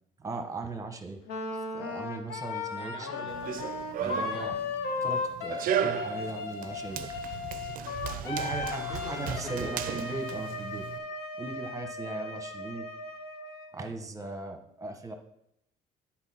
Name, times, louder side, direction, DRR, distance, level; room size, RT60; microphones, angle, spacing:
voice 1, 0.2-1.2 1.5-3.1 4.0-4.6 5.0-7.0 8.2-10.8 11.4-12.9 13.7-15.1, right 3 dB, 20° right, 6 dB, 1.0 m, -38 dB
Wind instrument woodwind instrument, 1.3-13.7, left 3 dB, 90° left, 1.0 m, -36 dB
voice 2, 2.8-3.6 4.0-4.7 7.6-9.8, left 3 dB, 30° left, 3 dB, 1.4 m, -44 dB
Run, 3.3-11.0, right 10 dB, 55° right, 0.4 m, -36 dB
9.7 x 4.3 x 4.3 m, 0.78 s
cardioid pair, 110°, 17 cm